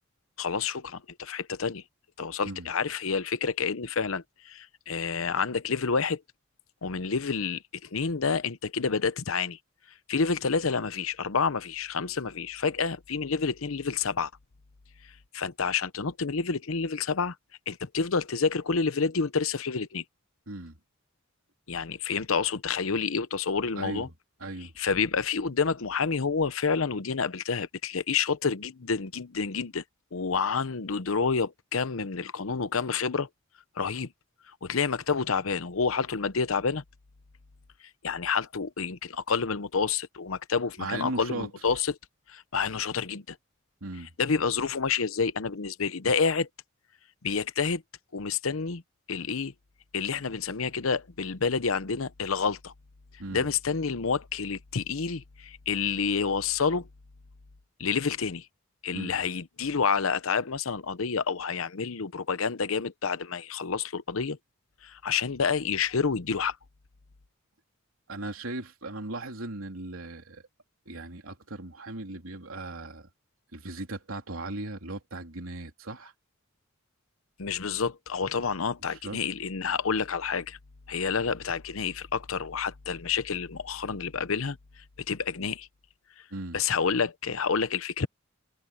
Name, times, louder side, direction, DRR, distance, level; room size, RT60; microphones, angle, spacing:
voice 1, 0.4-1.8 2.2-6.2 6.8-9.6 10.1-14.3 15.3-17.4 17.7-20.0 21.7-24.1 24.8-29.8 30.1-33.3 33.8-34.1 34.6-36.8 38.0-42.0 42.3-43.4 44.2-46.5 47.2-47.8 48.1-48.8 49.1-49.5 49.9-52.7 53.3-56.9 57.8-58.5 58.8-64.4 64.8-66.6 77.4-80.6 80.9-85.7 86.5-88.1, left 5 dB, 80° left, 0.8 m, -29 dB
voice 2, 20.5-20.8 23.8-24.1 24.4-24.7 40.8-41.5 43.8-44.1 53.2-53.5 58.9-59.2 68.1-70.4 70.8-73.1 73.5-76.1 78.9-79.2 86.3-86.6, right 2 dB, 90° right, 3.3 m, -37 dB
head